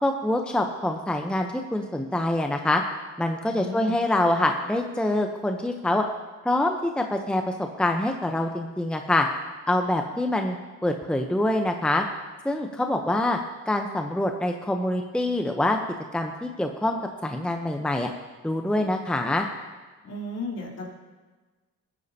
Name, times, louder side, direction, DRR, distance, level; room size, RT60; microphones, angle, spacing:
voice 1, 0.0-2.8 3.2-6.0 6.4-9.3 9.7-10.6 10.8-12.0 12.4-13.4 13.7-15.8 16.1-18.1 18.4-19.5, left 1 dB, 5° left, 4 dB, 0.8 m, -25 dB
voice 2, 3.5-3.9 20.0-20.9, left 1 dB, 55° left, -3 dB, 3.4 m, -34 dB
18.0 x 9.6 x 2.8 m, 1.3 s
cardioid pair, 90°, 30 cm